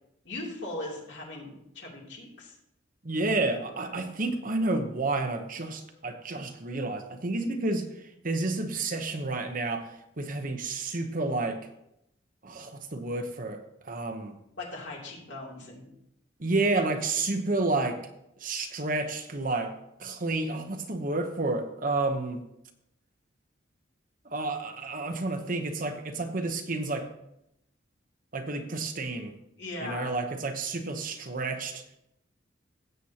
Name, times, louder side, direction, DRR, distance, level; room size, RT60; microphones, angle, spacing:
voice 1, 0.2-2.5 14.6-15.9 29.6-30.1, left 2 dB, 60° left, -3 dB, 3.0 m, -39 dB
voice 2, 3.0-7.9 8.2-9.9 10.2-11.6 12.4-14.4 16.4-18.0 18.4-19.7 20.0-22.4 24.2-27.1 28.3-29.3 29.8-32.0, right 2 dB, 45° right, 6 dB, 1.0 m, -30 dB
16.0 x 7.9 x 2.9 m, 0.81 s
head